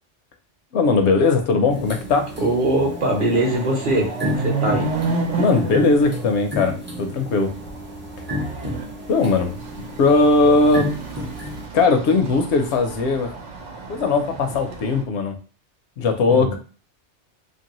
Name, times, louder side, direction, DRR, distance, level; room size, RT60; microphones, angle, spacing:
voice 1, 0.7-2.3 5.4-7.5 9.1-9.5 10.0-10.9 11.7-13.3 13.9-15.3 16.0-16.6, left 3 dB, 75° left, 5 dB, 0.8 m, -19 dB
Chatter / Car passing by / Motorcycle, 1.0-1.1 1.5-15.0, right 3 dB, 90° right, 1.0 m, -31 dB
sound 1, 1.7-11.7, left 2 dB, 20° right, 0.3 m, -32 dB
voice 2, 2.4-4.9 16.3-16.6, right 1 dB, 50° right, -1 dB, 0.9 m, -22 dB
2.9 x 2.6 x 2.9 m, 0.38 s
omnidirectional pair, 1.2 m